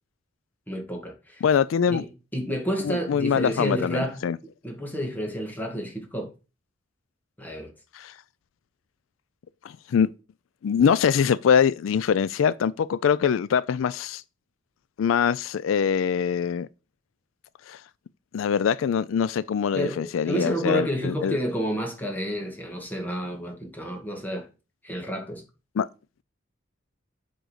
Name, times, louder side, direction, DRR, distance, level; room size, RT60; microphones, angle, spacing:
voice 1, 0.7-1.4 1.9-2.1 2.3-4.2 4.6-6.3 7.4-7.7 19.7-24.5 24.8-25.4, equal, 10° left, 2.0 m, -30 dB
voice 2, 1.4-2.0 2.8-4.4 7.9-8.1 9.6-10.1 10.6-14.2 15.0-16.7 17.7-17.8 18.3-21.4 25.8-25.9, left 7 dB, 80° left, 0.4 m, -23 dB
7.7 x 3.9 x 6.5 m
head